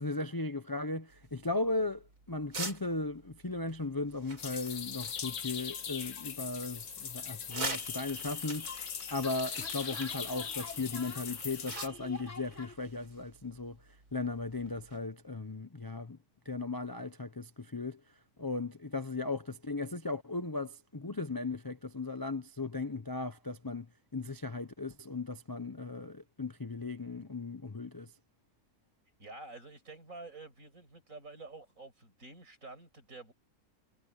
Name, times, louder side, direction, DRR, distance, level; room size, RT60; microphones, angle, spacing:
voice 1, 0.0-13.8 14.1-16.2 16.5-18.0 18.4-23.9 24.1-28.1, left 3 dB, 20° left, 0.6 m, -37 dB
sound 1, 1.1-15.0, right 3 dB, 90° right, 4.9 m, -47 dB
sound 2, 4.4-11.9, left 7 dB, 85° left, 1.8 m, -40 dB
sound 3, 7.5-12.8, left 2 dB, 50° left, 6.6 m, -48 dB
voice 2, 29.2-33.3, right 3 dB, 60° right, 7.3 m, -49 dB
omnidirectional pair, 1.6 m